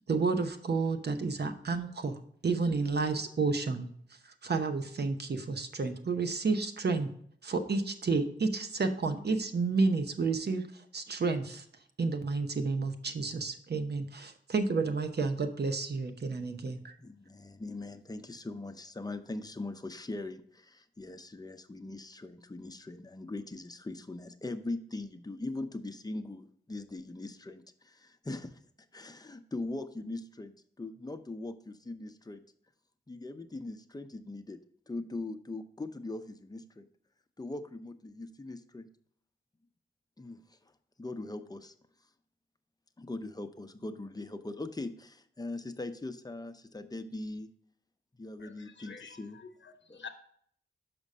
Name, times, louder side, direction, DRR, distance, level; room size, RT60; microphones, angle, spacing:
voice 1, 0.1-3.9 4.4-7.1 7.4-10.6 10.9-11.6 12.0-16.9, right 4 dB, 60° right, 7 dB, 0.9 m, -31 dB
voice 2, 17.0-28.6 28.9-32.4 33.1-34.6 34.9-36.9 37.4-38.9 40.2-40.7 41.0-41.7 43.0-47.5 48.2-49.4 49.9-50.1, left 2 dB, 20° left, 9 dB, 0.7 m, -41 dB
voice 3, 48.4-50.1, left 5 dB, 70° left, 6 dB, 1.1 m, -49 dB
6.1 x 5.1 x 5.4 m, 0.63 s
cardioid pair, 55°, 20 cm